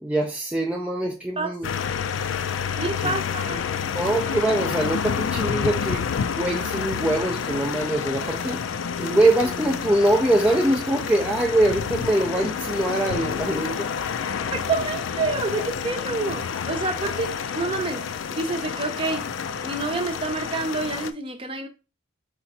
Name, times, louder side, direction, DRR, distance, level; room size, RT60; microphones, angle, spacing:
voice 1, 0.0-1.7 3.0-3.1 3.9-6.0 6.3-8.6 9.0-13.9, right 1 dB, 5° right, 0.4 m, -23 dB
sound 1, 1.6-21.1, left 7 dB, 70° left, 0.4 m, -29 dB
voice 2, 2.8-3.8 9.0-9.2 14.5-19.3 19.6-21.7, right 3 dB, 25° right, 0.7 m, -28 dB
4.3 x 2.5 x 4.0 m
head